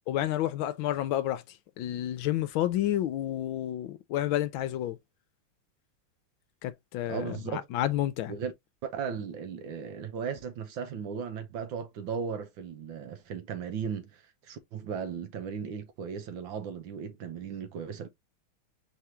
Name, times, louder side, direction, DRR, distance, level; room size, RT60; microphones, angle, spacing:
voice 1, 0.1-1.4 1.8-5.0 6.6-8.3, left 13 dB, 75° left, 1.3 m, -30 dB
voice 2, 7.1-7.7 8.3-8.5 8.8-18.1, right 6 dB, 70° right, 1.6 m, -36 dB
4.8 x 3.5 x 2.7 m
omnidirectional pair, 2.3 m